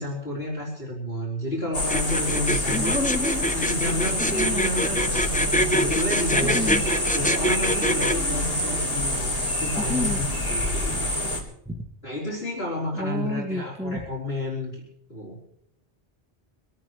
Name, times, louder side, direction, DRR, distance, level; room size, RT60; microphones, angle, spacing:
voice 1, 0.0-3.0 3.5-6.8 7.1-11.4 12.0-14.8 15.1-15.4, left 1 dB, 60° left, -5 dB, 4.4 m, -31 dB
sound 1, 1.7-11.4, left 1 dB, 35° left, 2.8 m, -27 dB
sound 2, 1.9-8.1, left 1 dB, 10° left, 0.4 m, -25 dB
voice 2, 2.7-3.4 4.2-4.7 6.4-6.8 9.8-10.2 11.7-11.9 12.9-14.0, left 1 dB, 5° right, 4 dB, 1.1 m, -30 dB
sound 3, 5.3-10.4, right 7 dB, 60° right, 1.1 m, -37 dB
25.5 x 14.0 x 3.2 m, 0.73 s
omnidirectional pair, 1.1 m